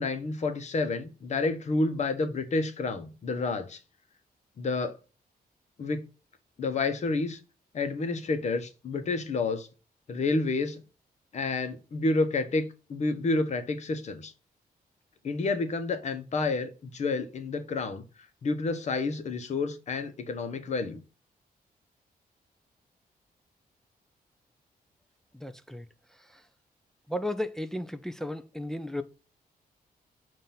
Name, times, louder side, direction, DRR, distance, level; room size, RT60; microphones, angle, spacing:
voice 1, 0.0-3.8 4.6-5.0 5.8-6.0 6.6-7.4 7.7-9.7 10.1-10.8 11.3-12.6 12.9-14.3 15.2-18.0 18.4-21.0, left 3 dB, 45° left, 0.9 m, -29 dB
voice 2, 25.3-25.9 26.3-26.4 27.1-29.0, left 1 dB, 5° left, 0.4 m, -34 dB
7.0 x 2.6 x 5.7 m
wide cardioid pair, 150°, 16 cm